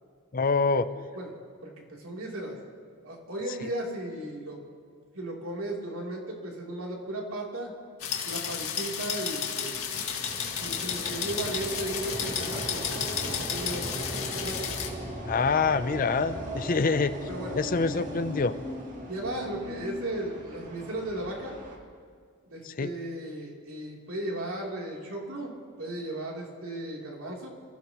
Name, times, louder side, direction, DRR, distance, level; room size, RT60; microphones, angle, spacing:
voice 1, 0.3-0.9 15.3-17.1 17.6-18.5 22.7-22.9, left 4 dB, 40° left, 12 dB, 0.5 m, -25 dB
voice 2, 0.9-1.4 1.6-2.6 3.0-4.6 5.1-7.7 8.2-9.8 10.6-14.0 14.3-14.6 16.7-16.8 17.3-17.6 17.9-18.1 19.1-21.6 22.5-25.5 25.8-27.5, right 1 dB, 75° right, -3 dB, 3.4 m, -36 dB
sound 1, 8.0-14.9, left 7 dB, 85° left, 2.0 m, -32 dB
sound 2, 9.2-21.8, equal, 40° right, 2.0 m, -38 dB
28.5 x 15.5 x 3.1 m, 2.1 s
head